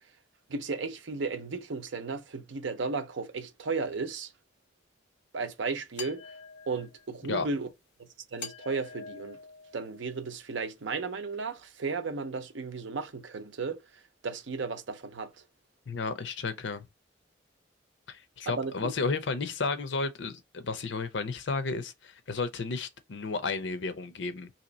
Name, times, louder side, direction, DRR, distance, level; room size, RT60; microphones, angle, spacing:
voice 1, 0.5-4.3 5.3-6.2 6.7-7.7 8.3-9.4 9.7-13.8 14.2-15.3 18.5-18.9, right 4 dB, 80° right, 0.6 m, -34 dB
sound 1, 6.0-7.1 8.4-10.3, left 5 dB, 60° left, 1.4 m, -45 dB
voice 2, 15.9-16.8 18.1-24.5, left 4 dB, 80° left, 0.6 m, -33 dB
2.9 x 2.8 x 4.0 m
head